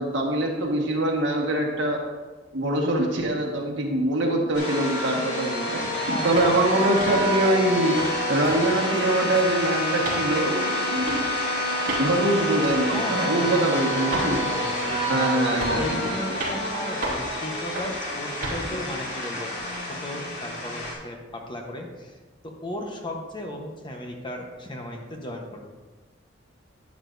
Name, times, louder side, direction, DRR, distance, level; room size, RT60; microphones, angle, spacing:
voice 1, 0.0-2.0 2.5-11.3 12.0-14.5 15.1-16.1, right 1 dB, 65° right, 0 dB, 1.6 m, -24 dB
sound 1, 4.5-20.9, equal, 60° left, 2.8 m, -28 dB
voice 2, 4.8-5.3 5.8-6.6 12.9-15.1 15.5-19.5 19.9-22.2 22.4-25.6, left 1 dB, 25° left, 2 dB, 1.0 m, -35 dB
sound 2, 6.3-6.6 7.0-7.2 7.7-8.1 8.4-8.6 8.9-9.5 10.0-10.2 11.0-11.2 11.8-12.1 12.6-12.8 13.4-13.5 14.1-14.3 14.9-15.2 15.6-15.9 16.3-16.6 17.0-17.3 17.8-18.0 18.4-18.6, right 2 dB, 50° right, 3.4 m, -32 dB
11.0 x 9.8 x 2.7 m, 1.3 s
head